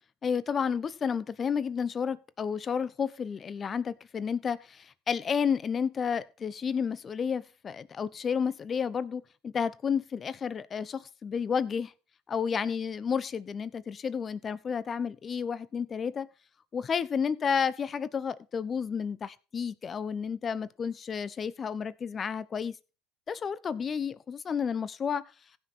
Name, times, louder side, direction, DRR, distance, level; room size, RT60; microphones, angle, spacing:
voice 1, 0.2-11.9 12.3-16.3 16.7-22.8 23.3-25.2, left 6 dB, 35° left, 0.9 m, -31 dB
16.0 x 6.1 x 4.3 m
supercardioid pair, 90°, 0 cm